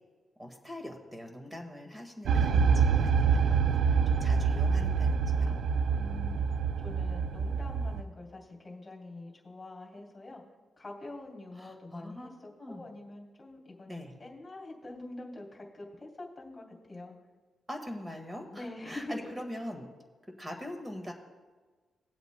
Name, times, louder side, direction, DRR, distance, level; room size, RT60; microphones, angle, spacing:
voice 1, 0.4-5.6 11.5-12.8 13.9-14.1 17.7-19.9 20.4-21.1, left 1 dB, 15° right, 4 dB, 1.7 m, -43 dB
sound 1, 2.3-8.0, right 6 dB, 80° right, 0.5 m, -26 dB
voice 2, 5.9-6.4 6.8-10.4 10.8-12.3 12.7-17.1 18.5-19.3, left 2 dB, 25° left, 0 dB, 3.0 m, -45 dB
20.0 x 8.0 x 2.2 m, 1.4 s
cardioid pair, 90°, 0 cm